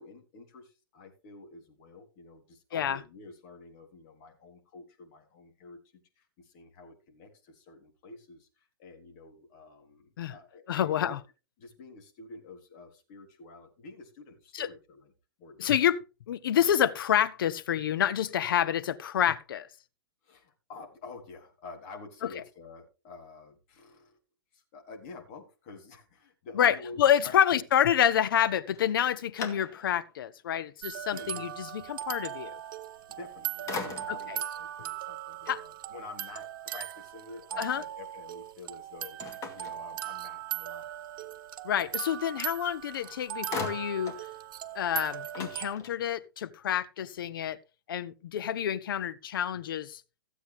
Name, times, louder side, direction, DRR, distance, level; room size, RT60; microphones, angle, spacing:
voice 1, 0.0-11.2 11.6-15.1 15.4-15.7 20.2-24.2 24.5-27.0 27.2-27.4 31.1-31.5 33.1-39.2 39.5-40.9, left 3 dB, 45° left, 3.7 m, -48 dB
voice 2, 10.7-11.2 14.5-14.7 15.6-16.0 16.3-19.7 26.5-32.6 34.3-34.4 35.5-35.6 37.6-37.8 41.6-44.2 44.7-47.6 47.9-50.0, left 10 dB, 65° left, 0.9 m, -28 dB
sound 1, 28.7-30.1 30.7-30.8 33.0-33.3 33.7-34.4 39.2-40.5 42.6-42.7 43.0-44.3 44.6-44.7 45.0-46.2, left 4 dB, 25° left, 2.4 m, -41 dB
sound 2, 30.8-45.7, right 11 dB, 60° right, 0.9 m, -39 dB
16.0 x 8.1 x 3.5 m
hypercardioid pair, 125°, 12 cm